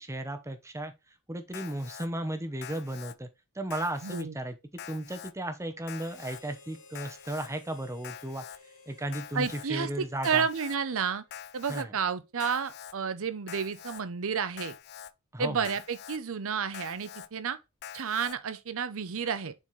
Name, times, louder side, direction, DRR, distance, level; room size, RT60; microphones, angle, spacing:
voice 1, 0.0-3.3 3.5-4.6 4.9-8.4 8.9-10.5 11.7-11.9 15.3-15.7, right 1 dB, 15° right, 0.8 m, -35 dB
Alarm, 1.5-2.1 2.6-3.1 3.7-4.2 4.8-5.3 5.9-6.4 6.9-7.5 8.0-8.6 9.1-9.7 10.2-10.8 11.3-11.8 12.4-12.9 13.5-14.0 14.6-15.1 15.6-16.2 16.7-17.3 17.8-18.3, left 9 dB, 50° left, 0.4 m, -45 dB
voice 2, 4.0-4.3 9.3-11.2 11.5-14.7 15.4-17.6 17.9-19.5, right 6 dB, 65° right, 0.7 m, -31 dB
Harmonica, 5.9-11.4, left 3 dB, 65° left, 2.9 m, -56 dB
7.2 x 4.2 x 3.2 m
head